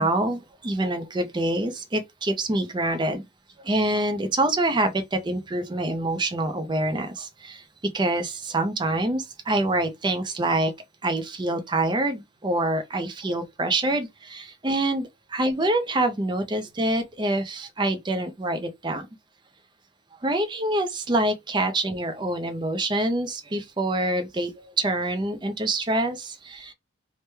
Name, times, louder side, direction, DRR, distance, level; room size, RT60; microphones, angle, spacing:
voice 1, 0.0-3.2 3.6-7.6 7.9-10.7 11.0-19.1 20.2-26.7, right 1 dB, 20° right, 0.4 m, -26 dB
3.1 x 2.1 x 3.3 m
head